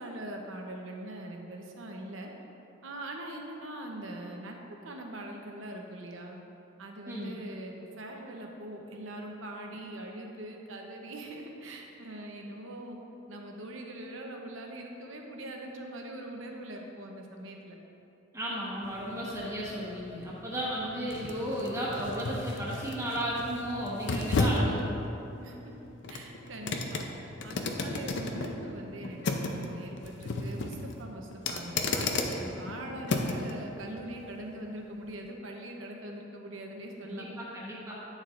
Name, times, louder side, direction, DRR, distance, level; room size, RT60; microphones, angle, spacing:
voice 1, 0.0-2.3 2.8-4.6 4.8-6.4 6.8-13.0 13.3-17.7 25.4-25.7 26.1-27.0 27.4-32.1 32.4-37.2, right 1 dB, 85° right, 2 dB, 0.8 m, -42 dB
voice 2, 18.3-25.0 37.0-37.9, equal, 15° right, -7 dB, 1.1 m, -34 dB
sound 1, 18.8-33.5 34.0-34.1, left 2 dB, 65° left, 0.6 m, -34 dB
9.2 x 6.4 x 2.5 m, 2.9 s
head